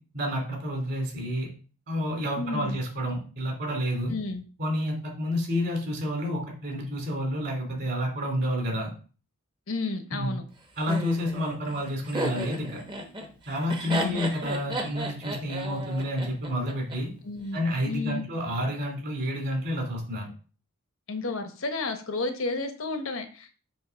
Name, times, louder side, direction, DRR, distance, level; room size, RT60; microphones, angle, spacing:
voice 1, 0.1-1.5 1.9-4.1 4.6-8.9 10.1-10.4 10.8-12.8 13.5-17.1 17.5-20.3, equal, 50° right, 0 dB, 2.6 m, -29 dB
voice 2, 2.4-2.8 4.1-4.4 9.7-10.4 13.8-14.3 17.2-17.6 17.9-18.2 21.1-23.6, left 3 dB, 65° left, 6 dB, 1.0 m, -32 dB
Laughter, 10.9-17.0, right 1 dB, 20° right, 0.9 m, -34 dB
7.1 x 3.1 x 5.7 m, 0.38 s
head